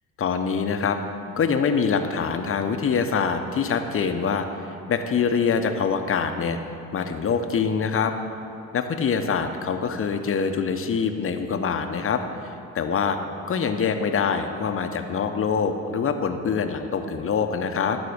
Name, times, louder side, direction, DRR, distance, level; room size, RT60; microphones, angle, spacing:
voice 1, 0.2-1.0 1.4-6.6 6.9-8.1 8.7-13.2 13.5-18.0, left 6 dB, 35° left, 7 dB, 0.8 m, -24 dB
11.5 x 4.1 x 6.5 m, 3.0 s
hypercardioid pair, 60°, 36 cm